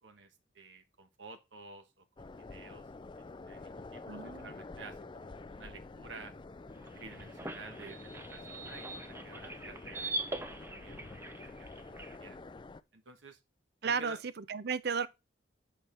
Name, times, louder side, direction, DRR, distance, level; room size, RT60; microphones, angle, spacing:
voice 1, 0.0-2.8 3.1-6.3 7.0-10.2 10.6-11.1 11.6-11.7 12.2-12.4 12.9-13.4 13.8-14.2, right 4 dB, 80° right, 1.3 m, -51 dB
sound 1, 2.2-12.8, left 3 dB, 25° left, 0.4 m, -48 dB
voice 2, 4.1-4.5 13.8-15.1, right 5 dB, 60° right, 0.6 m, -34 dB
sound 2, 6.7-12.2, right 2 dB, 15° right, 0.8 m, -42 dB
8.2 x 5.9 x 3.4 m
head